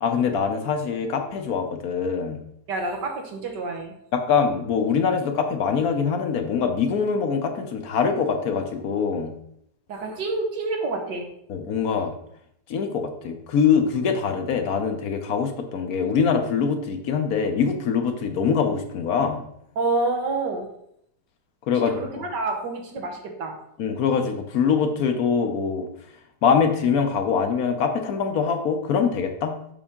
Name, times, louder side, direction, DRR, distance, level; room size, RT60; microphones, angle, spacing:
voice 1, 0.0-2.4 4.1-9.3 11.5-12.1 12.7-19.4 21.7-22.0 23.8-25.9 26.4-29.5, left 6 dB, 65° left, 5 dB, 1.2 m, -23 dB
voice 2, 2.7-3.9 9.9-11.3 19.8-20.7 21.7-23.6, right 3 dB, 80° right, 2 dB, 1.9 m, -28 dB
7.0 x 5.6 x 3.6 m, 0.74 s
omnidirectional pair, 1.8 m